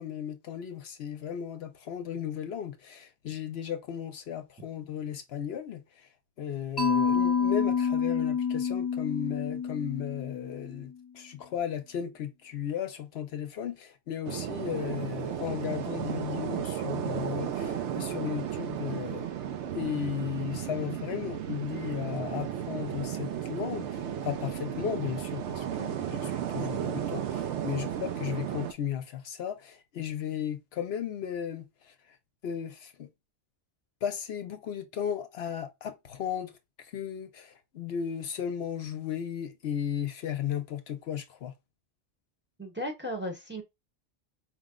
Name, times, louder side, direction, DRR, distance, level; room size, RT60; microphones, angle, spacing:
voice 1, 0.0-6.1 6.4-19.3 19.7-31.9 32.4-33.1 34.0-36.5 36.8-41.5, left 9 dB, 70° left, 0.8 m, -35 dB
Mallet percussion, 6.8-10.8, left 6 dB, 25° left, 0.7 m, -28 dB
sound 1, 14.2-28.7, right 9 dB, 80° right, 0.9 m, -34 dB
voice 2, 42.6-43.6, equal, 10° right, 0.9 m, -35 dB
5.1 x 2.1 x 3.6 m
omnidirectional pair, 1.2 m